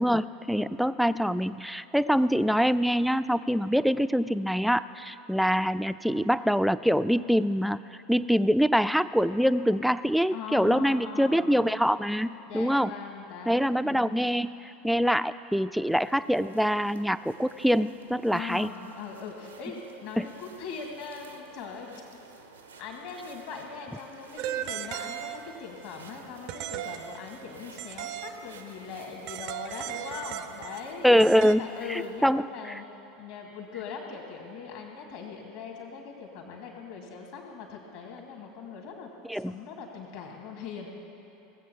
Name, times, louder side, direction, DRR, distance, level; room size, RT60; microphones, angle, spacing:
voice 1, 0.0-7.8 8.1-12.9 13.5-14.6 14.8-18.7 20.2-20.3 31.0-32.4 39.2-39.6, equal, ahead, 13 dB, 0.4 m, -24 dB
voice 2, 10.3-11.7 12.5-14.2 18.3-22.0 22.8-31.1 31.6-32.9 33.1-40.9, left 5 dB, 60° left, 1 dB, 2.4 m, -41 dB
sound 1, 15.9-32.3, right 4 dB, 85° right, 0.8 m, -52 dB
sound 2, 24.4-25.7 26.5-28.7 29.3-31.6, right 11 dB, 55° right, 0.5 m, -37 dB
18.5 x 7.7 x 6.9 m, 3.0 s
figure-of-eight pair, 80°, 0 cm